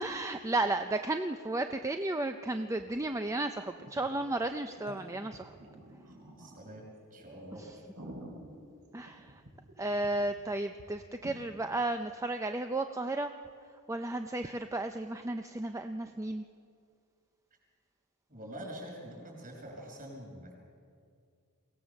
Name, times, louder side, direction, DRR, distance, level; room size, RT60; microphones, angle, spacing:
voice 1, 0.0-5.5 8.9-9.4 9.8-13.3 13.9-16.4, right 2 dB, 15° right, 7 dB, 0.5 m, -33 dB
sound 1, 2.8-2.9 3.1-3.2 3.8-4.2 4.7-6.7 7.2-7.3 7.7-9.7 10.0-10.1 10.4-10.5 10.8-10.9 11.2-11.4, right 1 dB, 75° right, 4.8 m, -49 dB
voice 2, 6.3-6.8 7.1-7.6 18.3-20.5, equal, 40° right, 0 dB, 6.3 m, -45 dB
23.0 x 17.5 x 7.1 m, 2.3 s
head